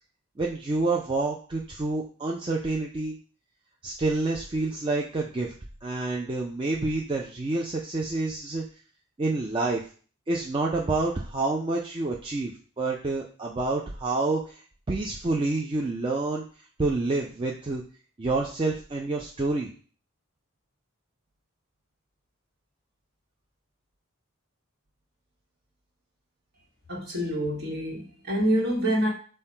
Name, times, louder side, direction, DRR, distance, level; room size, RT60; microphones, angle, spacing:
voice 1, 0.4-3.2 3.8-5.5 5.8-8.6 9.2-9.8 10.3-14.6 14.9-16.4 16.8-17.8 18.2-19.7, right 3 dB, 25° right, -2 dB, 0.4 m, -28 dB
voice 2, 26.9-29.1, equal, 45° right, -1 dB, 1.3 m, -26 dB
5.5 x 2.2 x 4.3 m, 0.41 s
head